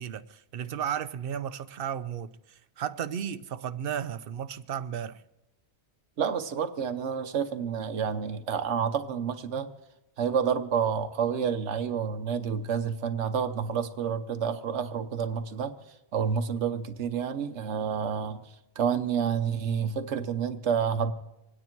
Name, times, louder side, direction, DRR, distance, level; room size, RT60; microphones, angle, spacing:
voice 1, 0.0-5.2, right 9 dB, 60° right, 0.8 m, -34 dB
voice 2, 6.2-9.7 10.2-15.7 16.1-18.4 18.8-21.1, right 7 dB, 90° right, 1.2 m, -29 dB
26.0 x 9.7 x 4.5 m
omnidirectional pair, 1.1 m